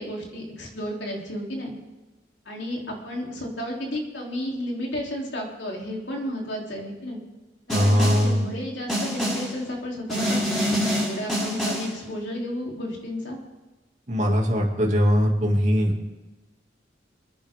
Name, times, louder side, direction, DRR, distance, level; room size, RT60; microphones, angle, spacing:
voice 1, 0.0-1.7 2.5-7.2 7.7-10.7 11.0-13.4, equal, 75° left, -1 dB, 3.7 m, -32 dB
Snare drum, 7.7-8.4 8.9-9.6 10.1-12.0, equal, ahead, 5.6 m, -26 dB
voice 2, 7.7-8.4 14.1-16.1, equal, 40° right, 0 dB, 2.7 m, -21 dB
27.0 x 10.0 x 3.8 m, 1.1 s
head